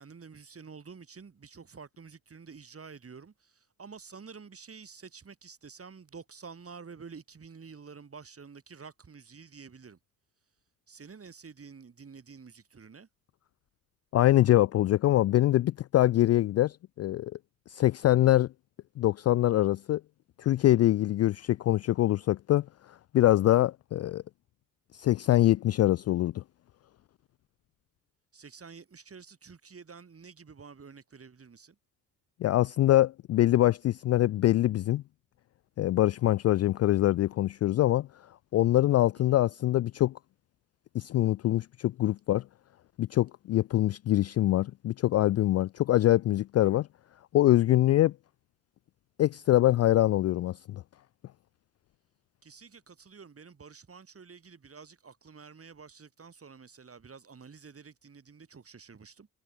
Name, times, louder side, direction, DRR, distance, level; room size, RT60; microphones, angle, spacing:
voice 1, 0.0-10.0 10.9-13.1 28.3-31.8 39.2-39.4 52.4-59.3, right 5 dB, 30° right, 2.7 m, -49 dB
voice 2, 14.1-17.3 17.7-18.5 19.0-20.0 20.4-24.2 24.9-26.4 32.4-35.0 35.8-38.1 38.5-40.2 40.9-42.4 43.0-46.9 47.3-48.1 49.2-50.8, left 14 dB, 35° left, 0.5 m, -24 dB
figure-of-eight pair, 40°, 46 cm